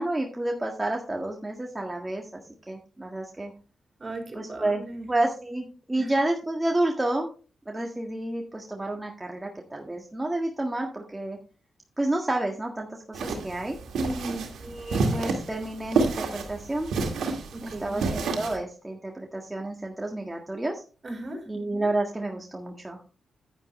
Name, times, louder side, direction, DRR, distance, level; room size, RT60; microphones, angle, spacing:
voice 1, 0.0-3.5 4.3-4.8 5.1-7.3 7.7-11.4 12.0-13.7 14.6-16.9 17.6-20.8 21.5-23.0, right 1 dB, 20° right, 1 dB, 1.7 m, -30 dB
voice 2, 4.0-5.1 6.0-6.1 14.0-14.5 17.5-18.0 21.0-21.5, right 1 dB, 40° right, 2 dB, 3.7 m, -36 dB
sound 1, 13.1-18.6, right 4 dB, 85° right, 2.0 m, -29 dB
9.7 x 9.5 x 3.2 m, 0.37 s
cardioid pair, 55°, 0 cm